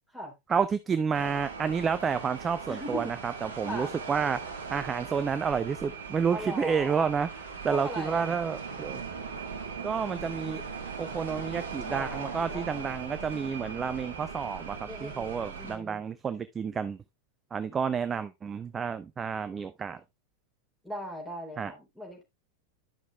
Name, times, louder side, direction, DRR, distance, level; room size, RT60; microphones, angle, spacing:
voice 1, 0.5-4.4 4.7-7.3 7.6-9.0 9.8-10.6 11.0-17.0 17.5-20.0 21.6-21.7, right 6 dB, 20° right, 0.5 m, -30 dB
sound 1, 1.1-15.8, right 5 dB, 65° right, 1.4 m, -39 dB
voice 2, 2.7-3.2 3.6-3.9 6.3-7.1 7.7-8.4 11.9-12.9 14.9-16.0 20.8-22.2, equal, ahead, 3.7 m, -39 dB
11.5 x 6.0 x 2.4 m
figure-of-eight pair, 90°, 0 cm